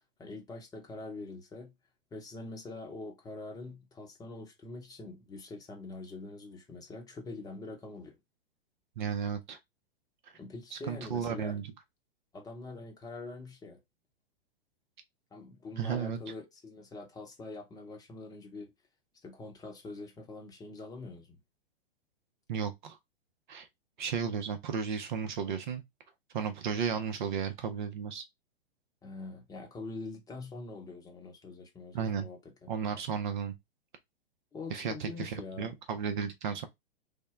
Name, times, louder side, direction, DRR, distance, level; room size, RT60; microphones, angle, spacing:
voice 1, 0.2-1.7 2.1-8.2 10.4-11.6 12.3-13.8 15.3-18.7 19.2-21.4 29.0-32.7 34.5-35.7, left 3 dB, 10° left, 0.9 m, -44 dB
voice 2, 9.0-9.6 10.7-11.7 15.8-16.2 22.5-23.0 23.5-23.7 24.0-25.8 26.3-28.2 31.9-32.3 32.7-33.5 34.7-36.7, right 7 dB, 50° right, 0.7 m, -34 dB
3.6 x 2.1 x 3.4 m
figure-of-eight pair, 105°, 30 cm